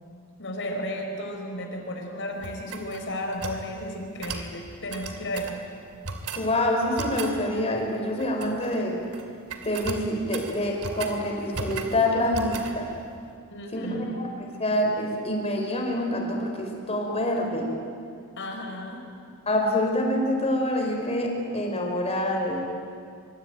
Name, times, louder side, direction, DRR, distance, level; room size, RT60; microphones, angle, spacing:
voice 1, 0.4-5.6 13.5-14.2 18.4-19.0, left 1 dB, 55° left, 3 dB, 4.8 m, -34 dB
sound 1, 2.4-3.6 4.2-4.5 4.9-5.6 6.0-6.5 7.0-7.4 8.2-8.8 9.0-9.2 9.5-11.2 11.5-12.0 12.3-12.8, right 4 dB, 80° right, 2.7 m, -36 dB
voice 2, 6.3-9.0 9.6-12.9 13.7-14.3 14.6-17.7 19.5-22.6, left 1 dB, 30° left, 1 dB, 4.8 m, -26 dB
25.0 x 24.0 x 9.1 m, 2.3 s
head